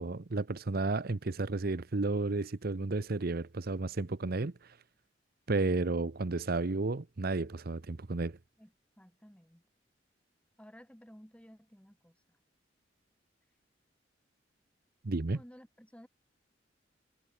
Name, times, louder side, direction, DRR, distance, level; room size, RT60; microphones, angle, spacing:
voice 1, 0.0-4.8 5.5-8.4 15.0-15.4, right 3 dB, 55° right, 0.8 m, -32 dB
voice 2, 8.6-9.6 10.6-12.4 15.3-16.1, equal, 5° left, 3.4 m, -55 dB
head